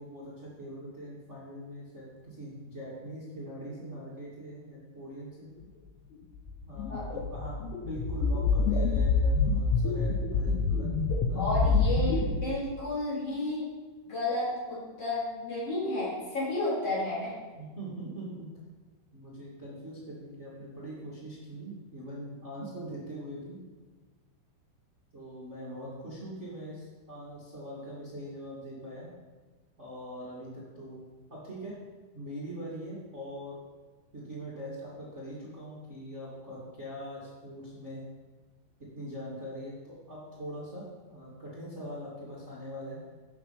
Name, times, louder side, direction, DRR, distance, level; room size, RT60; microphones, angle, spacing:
voice 1, 0.0-5.5 6.6-10.9 11.3-12.4 17.5-18.5 19.1-23.6 25.1-29.1 29.8-31.0 31.3-31.7 32.1-33.6 34.1-38.0 38.9-43.0, equal, 45° right, -6 dB, 0.9 m, -42 dB
sound 1, 6.5-12.2, left 4 dB, 80° left, 3.3 m, -27 dB
voice 2, 11.3-13.7 14.1-17.3, left 2 dB, 30° left, -7 dB, 4.3 m, -32 dB
11.5 x 8.5 x 5.3 m, 1.4 s
omnidirectional pair, 5.6 m